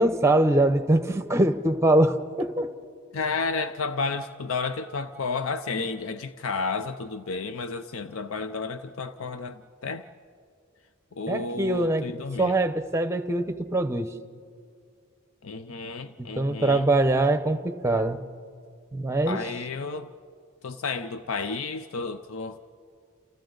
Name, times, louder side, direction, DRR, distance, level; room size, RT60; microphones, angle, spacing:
voice 1, 0.0-2.7 11.3-12.1 12.4-14.1 16.2-18.2 18.9-19.4, right 2 dB, 15° right, 0.8 m, -23 dB
voice 2, 3.1-10.1 11.1-12.6 15.4-16.9 19.3-20.1 20.6-22.6, left 4 dB, 75° left, 0.6 m, -32 dB
29.5 x 29.0 x 3.9 m
head